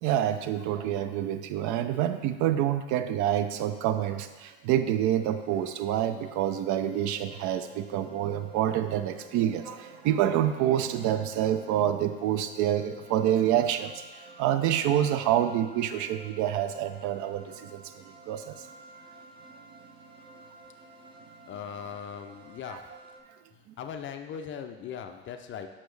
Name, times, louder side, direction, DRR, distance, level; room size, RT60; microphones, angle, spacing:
voice 1, 0.0-14.0 14.4-18.6 22.7-22.8, right 11 dB, 50° right, 11 dB, 0.5 m, -27 dB
sound 1, 4.9-23.2, right 2 dB, 15° right, 0.7 m, -52 dB
voice 2, 21.5-22.8 23.8-25.7, left 8 dB, 35° left, 6 dB, 0.5 m, -39 dB
6.1 x 6.0 x 3.2 m, 1.2 s
hypercardioid pair, 90°, 37 cm